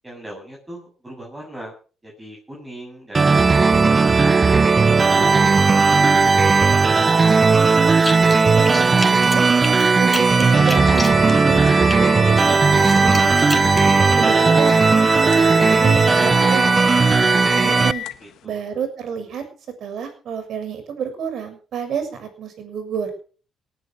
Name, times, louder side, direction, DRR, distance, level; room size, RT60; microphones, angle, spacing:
voice 1, 0.0-1.7 2.0-3.6 4.2-5.4 18.2-18.6, right 1 dB, 15° right, -2 dB, 7.5 m, -38 dB
sound 1, 3.1-17.9, right 4 dB, 30° right, 0.8 m, -16 dB
sound 2, 8.0-8.4 8.6-12.0 12.4-13.9, left 2 dB, 15° left, 4.1 m, -30 dB
voice 2, 8.4-9.4 10.0-13.6 14.2-14.8 15.1-16.7 17.3-18.0 18.4-19.4 19.8-23.1, right 7 dB, 65° right, 9 dB, 6.7 m, -30 dB
sound 3, 9.8-18.4, left 13 dB, 80° left, 1.6 m, -31 dB
19.5 x 10.0 x 6.4 m, 0.39 s
cardioid pair, 90°, 0 cm